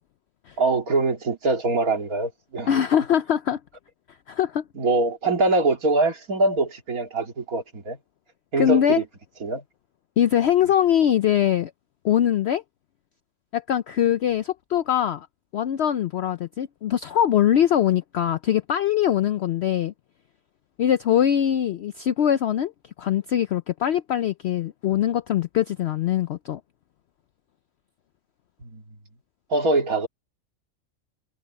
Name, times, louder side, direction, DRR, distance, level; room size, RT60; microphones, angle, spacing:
voice 1, 0.6-2.8 4.7-8.0 8.5-9.0 9.4-9.6 28.6-28.8 29.5-30.1, right 2 dB, 80° right, 2.9 m, -23 dB
voice 2, 2.7-3.6 4.3-4.6 8.6-9.0 10.2-11.7 12.0-12.6 13.5-15.3 15.5-19.9 20.8-22.7 23.0-26.6, left 10 dB, 65° left, 0.7 m, -22 dB
omnidirectional pair, 1.5 m